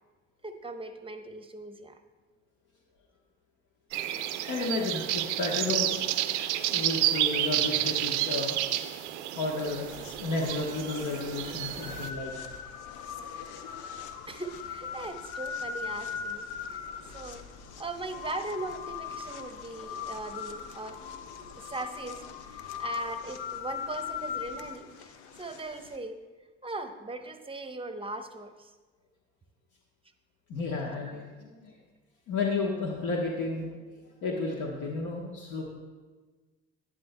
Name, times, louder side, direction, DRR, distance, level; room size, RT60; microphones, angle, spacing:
voice 1, 0.4-2.0 7.1-7.2 14.3-17.5 17.8-21.0 21.5-26.2 26.6-28.7, right 2 dB, 15° right, 8 dB, 0.8 m, -39 dB
sound 1, 3.9-12.1, right 13 dB, 85° right, 0.5 m, -30 dB
voice 2, 4.5-6.0 6.7-8.5 9.3-9.9 10.2-12.3 30.5-31.8 32.3-33.7 34.2-35.6, left 3 dB, 60° left, -1 dB, 1.2 m, -32 dB
sound 2, 9.6-26.0, left 7 dB, 80° left, 0.7 m, -40 dB
11.0 x 9.5 x 2.2 m, 1.3 s
hypercardioid pair, 60°, 34 cm